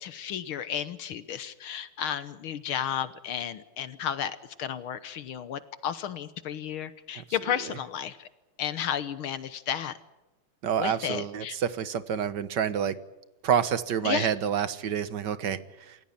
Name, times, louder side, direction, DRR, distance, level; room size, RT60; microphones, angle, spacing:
voice 1, 0.0-8.3 8.6-9.9 10.8-11.6 14.1-14.3, left 9 dB, 75° left, 14 dB, 1.8 m, -33 dB
voice 2, 10.6-13.0 13.4-16.0, right 8 dB, 55° right, 14 dB, 1.6 m, -28 dB
29.0 x 16.0 x 8.7 m, 1.0 s
omnidirectional pair, 2.4 m